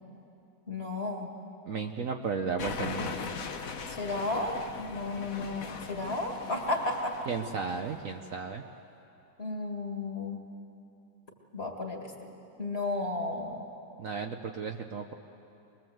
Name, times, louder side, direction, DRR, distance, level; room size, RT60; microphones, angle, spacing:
voice 1, 0.7-1.3 3.9-7.2 9.4-10.4 11.5-12.1 12.6-13.6, left 2 dB, 35° left, 1 dB, 2.2 m, -33 dB
voice 2, 1.7-3.3 7.3-8.6 14.0-15.1, right 5 dB, 55° right, 4 dB, 1.1 m, -34 dB
sound 1, 2.6-8.1, left 5 dB, 55° left, 1.4 m, -40 dB
24.5 x 20.5 x 7.9 m, 2.8 s
omnidirectional pair, 1.9 m